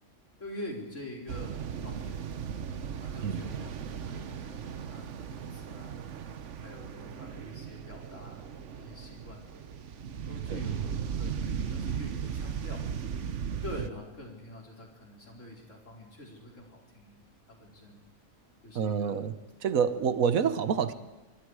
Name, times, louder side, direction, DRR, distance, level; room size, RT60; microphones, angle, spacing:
voice 1, 0.4-2.4 3.0-6.0 6.6-8.5 8.7-9.6 10.2-12.8 13.6-17.2 17.6-18.0 18.6-19.2 19.9-20.0, left 1 dB, 60° left, 0 dB, 4.9 m, -45 dB
sound 1, 1.3-13.9, right 7 dB, 60° right, 1.2 m, -37 dB
voice 2, 18.7-19.3 19.6-20.9, right 7 dB, 75° right, 13 dB, 1.5 m, -27 dB
26.0 x 23.5 x 4.9 m, 1.1 s
omnidirectional pair, 1.4 m